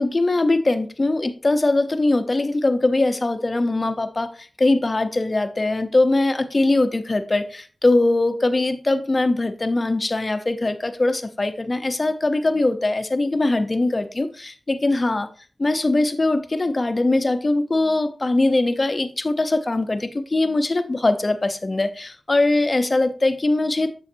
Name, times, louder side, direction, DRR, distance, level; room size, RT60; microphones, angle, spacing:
voice 1, 0.0-15.3 15.6-23.9, left 2 dB, 35° left, 0.7 m, -21 dB
7.0 x 7.0 x 2.6 m
wide cardioid pair, 70°, 0 cm